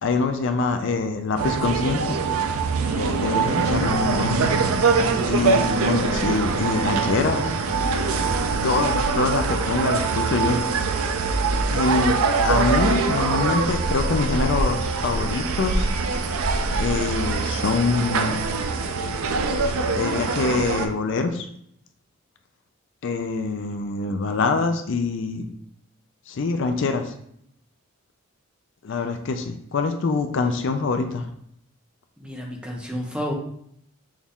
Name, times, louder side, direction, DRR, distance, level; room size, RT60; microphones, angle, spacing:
voice 1, 0.0-2.0 3.0-4.4 5.3-7.5 8.6-10.6 11.7-12.2 12.4-15.9 16.7-18.4 19.9-21.5 23.0-25.5 26.3-27.1 28.8-31.3, left 4 dB, 60° left, 7 dB, 0.4 m, -24 dB
sound 1, 1.4-20.9, right 4 dB, 85° right, 0.5 m, -23 dB
voice 2, 32.2-33.3, equal, 5° right, -1 dB, 0.7 m, -30 dB
6.2 x 2.3 x 3.6 m, 0.70 s
head